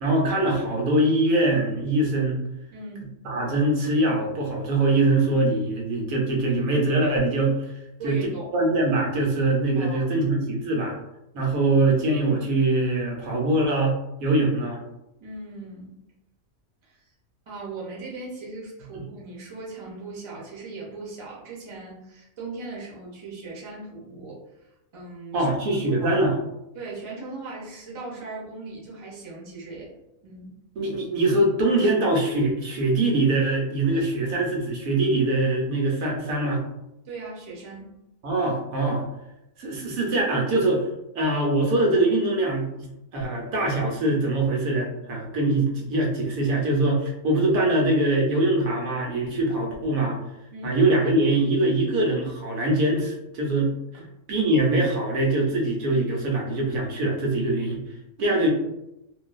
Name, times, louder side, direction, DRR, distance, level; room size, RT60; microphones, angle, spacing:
voice 1, 0.0-2.4 3.2-7.7 8.0-8.2 8.5-10.9 11.3-14.8 18.9-19.0 25.3-26.4 30.8-36.6 38.2-39.0 39.6-40.9 41.1-50.2 50.6-53.7 54.3-57.8 58.2-58.5, right 2 dB, 75° right, -1 dB, 1.1 m, -23 dB
voice 2, 2.7-3.1 8.0-8.5 9.7-10.1 15.2-15.9 16.8-17.1 17.5-24.7 24.9-26.2 26.7-29.9 30.2-30.5 37.0-37.9 50.5-50.8 53.9-54.0 58.3-58.4, right 3 dB, 40° right, -5 dB, 0.4 m, -38 dB
2.5 x 2.3 x 2.3 m, 0.88 s
omnidirectional pair, 1.5 m